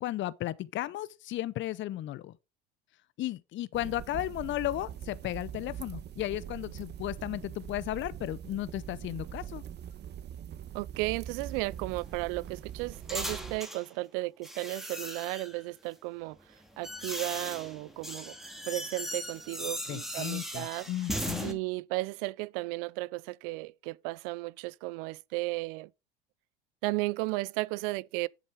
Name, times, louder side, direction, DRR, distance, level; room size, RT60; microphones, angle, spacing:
voice 1, 0.0-2.3 3.2-9.6 19.9-21.6, left 14 dB, 40° left, 0.6 m, -35 dB
sound 1, 3.7-13.6, right 10 dB, 35° right, 0.8 m, -42 dB
voice 2, 10.7-18.4 18.7-20.9 21.4-25.9 26.8-28.3, right 22 dB, 70° right, 0.5 m, -34 dB
sound 2, 11.4-13.9 14.4-15.6 16.4-21.5, equal, ahead, 2.1 m, -38 dB
7.8 x 6.7 x 4.5 m
hypercardioid pair, 90°, 29 cm